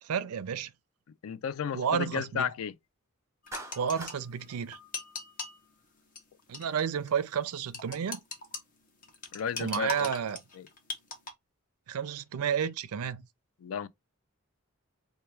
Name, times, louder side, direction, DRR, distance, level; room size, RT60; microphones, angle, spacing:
voice 1, 0.0-0.7 1.7-2.5 3.8-4.8 6.5-8.2 9.6-10.4 11.9-13.3, right 7 dB, 85° right, 0.4 m, -31 dB
voice 2, 1.2-2.7 9.3-10.1 10.6-10.7 13.6-13.9, left 7 dB, 70° left, 0.3 m, -33 dB
sound 1, 3.5-5.6 6.2-6.3 6.5-6.8 7.1-7.2 7.7-8.6 9.0-11.3, left 3 dB, 35° left, 0.8 m, -39 dB
Clapping, 3.5-4.2, right 3 dB, 15° right, 0.5 m, -43 dB
4.3 x 2.2 x 3.3 m
head